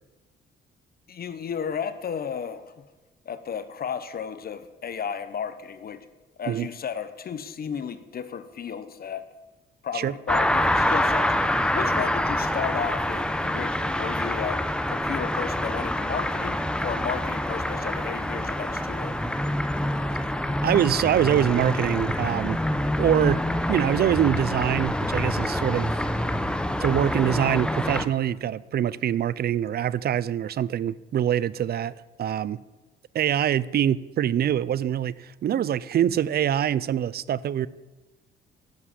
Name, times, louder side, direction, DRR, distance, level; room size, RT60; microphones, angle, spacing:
voice 1, 1.1-2.8 3.3-6.0 6.4-9.3 9.8-11.3 11.7-19.2, left 7 dB, 50° left, 0.9 m, -33 dB
sound 1, 10.3-28.1, left 1 dB, 5° left, 0.8 m, -26 dB
voice 2, 20.6-22.6 23.0-26.0 26.8-32.6 33.1-37.7, right 10 dB, 50° right, 0.5 m, -24 dB
11.5 x 7.3 x 8.4 m
cardioid pair, 90°, 20 cm